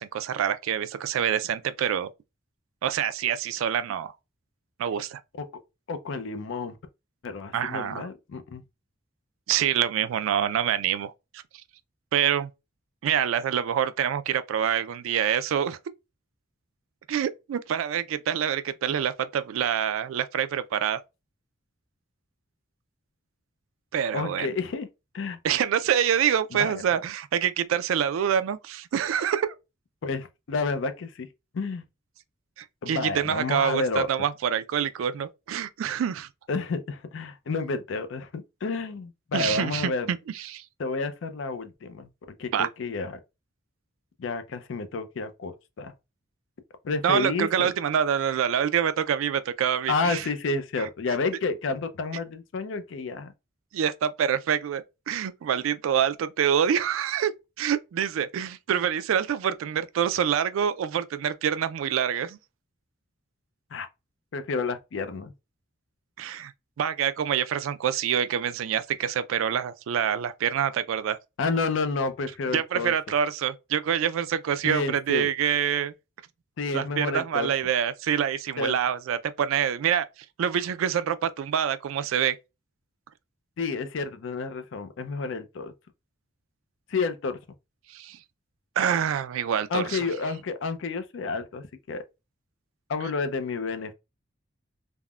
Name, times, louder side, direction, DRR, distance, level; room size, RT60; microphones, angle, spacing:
voice 1, 0.0-2.1 2.8-4.1 4.8-5.2 7.5-8.0 9.5-11.1 12.1-12.5 13.0-15.8 17.1-21.0 23.9-24.5 25.4-29.5 32.6-36.3 39.3-40.6 42.5-42.7 47.0-50.3 53.7-57.3 57.6-62.4 66.2-66.5 66.8-71.2 72.5-75.9 76.7-80.1 80.4-82.4 87.9-88.2 88.8-90.1, right 9 dB, 85° right, 0.3 m, -26 dB
voice 2, 5.9-6.8 7.2-8.6 24.1-24.9 25.1-25.4 26.5-26.7 30.0-31.3 31.5-31.8 32.8-34.1 36.5-40.2 40.8-42.1 42.4-43.2 44.2-45.9 46.8-47.7 49.9-53.3 63.7-63.9 64.3-65.3 71.4-72.9 74.6-75.3 76.6-77.5 78.6-78.7 83.6-85.7 86.9-87.4 89.7-92.0 92.9-93.9, left 4 dB, 70° left, 0.4 m, -30 dB
3.5 x 2.1 x 2.2 m
head